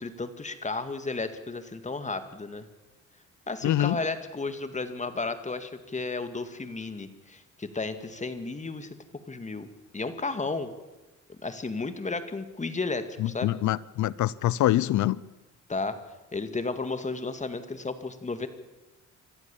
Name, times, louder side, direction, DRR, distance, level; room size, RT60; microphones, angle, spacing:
voice 1, 0.0-2.7 3.5-9.0 9.3-9.7 9.9-10.7 11.3-13.5 15.7-16.0 16.3-18.5, left 3 dB, 25° left, 2.0 m, -33 dB
voice 2, 3.6-4.0 13.2-15.2, left 14 dB, 70° left, 0.7 m, -25 dB
25.5 x 14.0 x 7.1 m
cardioid pair, 90°, 30 cm